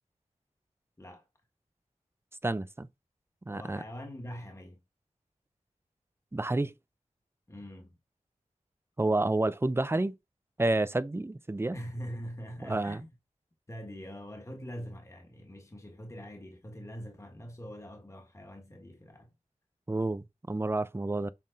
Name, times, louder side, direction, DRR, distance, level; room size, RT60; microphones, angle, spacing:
voice 1, 2.4-2.9 3.5-3.8 6.3-6.7 9.0-10.1 10.6-11.7 12.6-13.0 19.9-21.3, right 2 dB, 20° right, 0.6 m, -29 dB
voice 2, 3.5-4.8 7.5-8.0 11.7-13.1 13.7-19.3, equal, 20° left, 1.6 m, -43 dB
7.5 x 3.6 x 3.9 m
wide cardioid pair, 65°, 13 cm